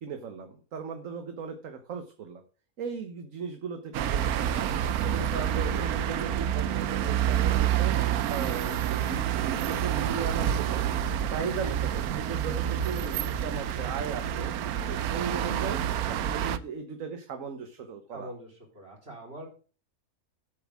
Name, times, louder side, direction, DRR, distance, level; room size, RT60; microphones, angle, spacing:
voice 1, 0.0-2.4 2.8-4.7 5.0-7.9 8.3-10.9 11.3-14.5 14.9-18.3, right 5 dB, 65° right, 7 dB, 1.5 m, -37 dB
sound 1, 3.9-16.6, right 10 dB, 80° right, 1.2 m, -28 dB
voice 2, 18.1-19.5, right 1 dB, 45° right, -1 dB, 4.5 m, -44 dB
8.6 x 7.0 x 7.3 m, 0.38 s
omnidirectional pair, 1.5 m